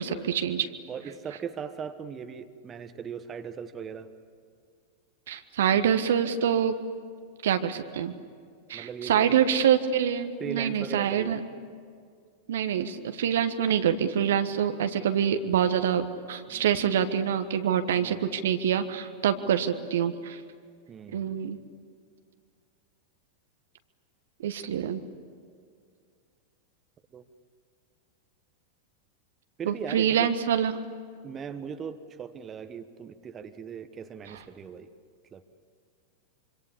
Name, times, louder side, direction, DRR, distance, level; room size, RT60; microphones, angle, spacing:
voice 1, 0.0-0.7 5.3-6.7 7.4-8.1 8.7-11.4 12.5-20.4 21.1-21.6 24.4-25.0 29.6-30.7, right 9 dB, 60° right, 9 dB, 1.4 m, -26 dB
voice 2, 0.9-4.1 8.7-9.5 10.4-11.4 16.5-16.7 17.9-18.2 20.9-21.3 27.1-27.2 29.6-30.3 31.2-34.9 35.3-35.4, right 7 dB, 25° right, 9 dB, 1.3 m, -39 dB
26.0 x 25.5 x 8.5 m, 2.2 s
figure-of-eight pair, 90°, 0 cm